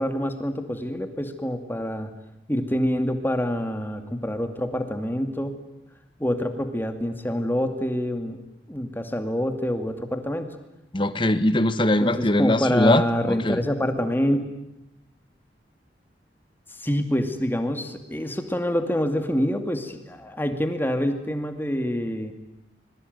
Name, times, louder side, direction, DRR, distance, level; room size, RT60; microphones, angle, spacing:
voice 1, 0.0-2.1 2.5-5.6 6.2-8.4 8.7-10.6 12.0-14.5 16.8-22.3, equal, 10° left, 7 dB, 2.4 m, -26 dB
voice 2, 10.9-13.6, left 1 dB, 30° left, 12 dB, 1.4 m, -21 dB
25.0 x 22.5 x 9.5 m, 0.85 s
head